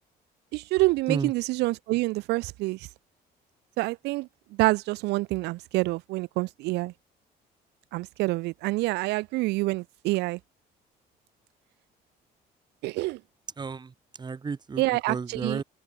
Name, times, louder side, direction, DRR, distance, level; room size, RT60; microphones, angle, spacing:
voice 1, 0.5-2.9 3.8-4.3 4.6-6.9 7.9-10.4 12.8-13.2 14.8-15.6, right 21 dB, 85° right, 0.6 m, -27 dB
voice 2, 13.6-15.6, right 5 dB, 25° right, 1.6 m, -33 dB
open air
cardioid pair, 110°, 17 cm